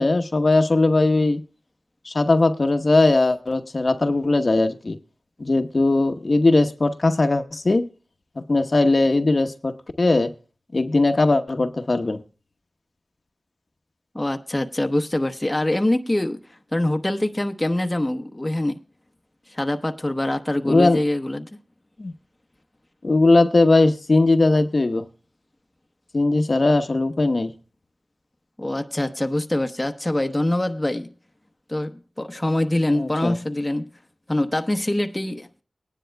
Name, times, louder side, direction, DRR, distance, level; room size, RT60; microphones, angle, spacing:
voice 1, 0.0-1.4 2.0-5.0 5.4-7.9 8.4-10.3 10.7-12.2 20.6-21.0 22.0-22.1 23.0-25.0 26.1-27.5 32.9-33.3, left 2 dB, 55° left, 0.9 m, -19 dB
voice 2, 14.1-16.4 16.7-18.8 19.5-21.5 28.6-31.1 31.7-33.9 34.3-35.5, left 1 dB, 20° left, 0.9 m, -24 dB
19.5 x 10.0 x 2.2 m
wide cardioid pair, 50°, 0 cm